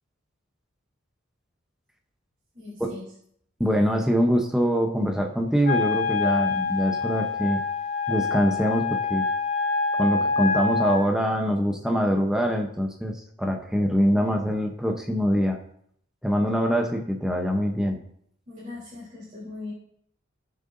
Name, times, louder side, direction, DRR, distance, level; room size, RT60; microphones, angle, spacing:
voice 1, 2.5-3.1 18.5-19.7, left 3 dB, 40° right, -8 dB, 3.6 m, -39 dB
voice 2, 3.6-7.6 8.1-9.3 9.9-15.6 16.2-18.0, equal, 5° right, 2 dB, 0.8 m, -24 dB
Wind instrument woodwind instrument, 5.6-11.0, left 4 dB, 60° left, 2.3 m, -26 dB
18.0 x 6.6 x 2.7 m, 0.68 s
head